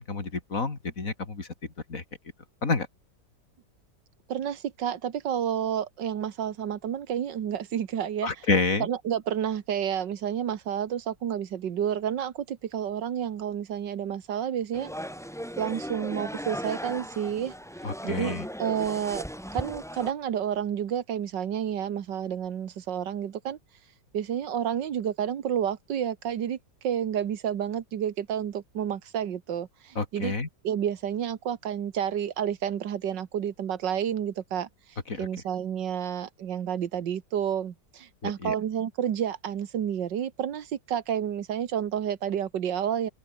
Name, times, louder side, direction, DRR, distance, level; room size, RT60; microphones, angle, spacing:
voice 1, 0.0-1.5 1.9-2.0 2.6-2.9 8.2-8.9 17.8-18.4 29.9-30.5 35.1-35.3 38.2-38.5, left 3 dB, 50° left, 3.4 m, -29 dB
voice 2, 4.3-8.5 8.8-14.9 15.6-17.5 18.0-19.2 19.5-23.6 24.1-26.6 26.8-30.3 30.6-34.7 35.2-43.1, right 9 dB, 85° right, 2.0 m, -30 dB
sound 1, 14.7-20.1, equal, ahead, 3.7 m, -37 dB
open air
omnidirectional pair, 1.9 m